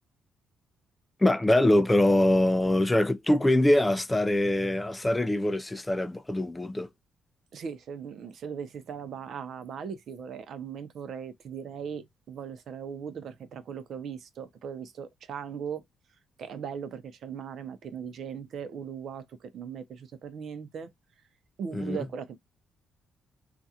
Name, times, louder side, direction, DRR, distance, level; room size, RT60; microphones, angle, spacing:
voice 1, 1.2-6.9 21.7-22.0, left 1 dB, 15° left, 0.3 m, -23 dB
voice 2, 7.5-15.8 16.4-20.9 21.6-22.4, right 7 dB, 65° right, 0.5 m, -38 dB
2.4 x 2.2 x 2.7 m
cardioid pair, 90°, 0 cm